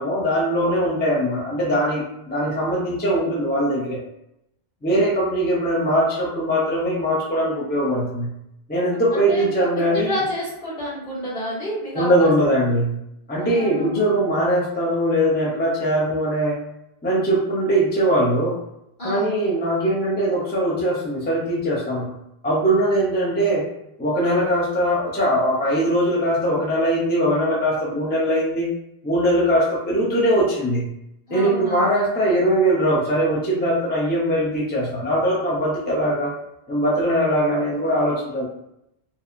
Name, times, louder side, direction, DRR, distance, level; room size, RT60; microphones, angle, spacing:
voice 1, 0.0-4.0 4.8-8.3 8.7-10.1 11.9-13.0 13.3-16.6 17.0-18.6 19.0-22.1 22.4-23.7 24.0-28.7 29.0-30.8 31.3-36.3 36.7-38.4, right 1 dB, 20° left, -6 dB, 0.3 m, -21 dB
voice 2, 8.9-9.5 9.7-12.3 13.3-14.1 19.0-19.4 31.3-32.0, equal, 65° left, -12 dB, 1.5 m, -30 dB
2.8 x 2.2 x 2.4 m, 0.83 s
omnidirectional pair, 1.0 m